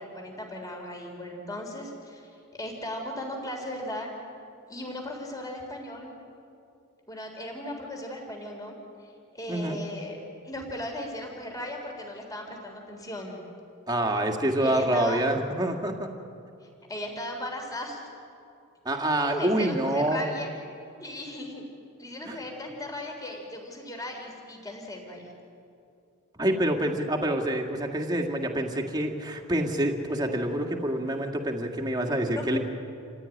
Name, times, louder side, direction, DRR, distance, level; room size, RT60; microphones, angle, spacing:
voice 1, 0.0-4.1 4.7-6.1 7.1-8.8 9.3-10.2 10.4-13.4 14.6-15.2 16.9-18.0 19.3-20.5 21.0-21.7 22.0-25.3 32.3-32.6, left 1 dB, 15° left, 1 dB, 3.8 m, -37 dB
voice 2, 13.9-16.1 18.9-20.3 22.3-22.4 26.4-32.6, right 1 dB, 20° right, 2 dB, 2.1 m, -27 dB
28.0 x 16.0 x 9.9 m, 2.5 s
head